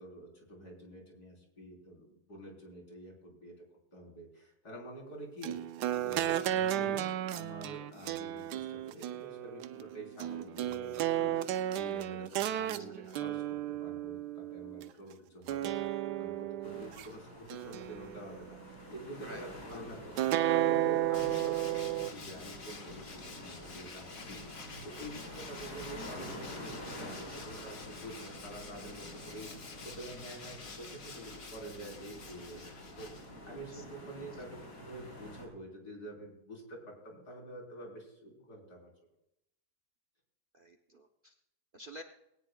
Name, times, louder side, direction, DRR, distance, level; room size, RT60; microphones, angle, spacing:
voice 1, 0.0-3.6 3.9-38.9, right 1 dB, 70° left, 0 dB, 4.5 m, -48 dB
sound 1, 5.4-14.9 15.5-17.1 17.5-18.6 20.2-22.1, right 12 dB, 80° right, 1.2 m, -33 dB
sound 2, 16.6-35.5, equal, 90° left, 4.5 m, -48 dB
Tools, 21.1-33.6, left 4 dB, 55° left, 1.9 m, -49 dB
voice 2, 40.5-41.4 41.7-42.0, equal, 45° right, 5 dB, 0.8 m, -50 dB
20.5 x 18.0 x 2.3 m, 0.84 s
omnidirectional pair, 1.8 m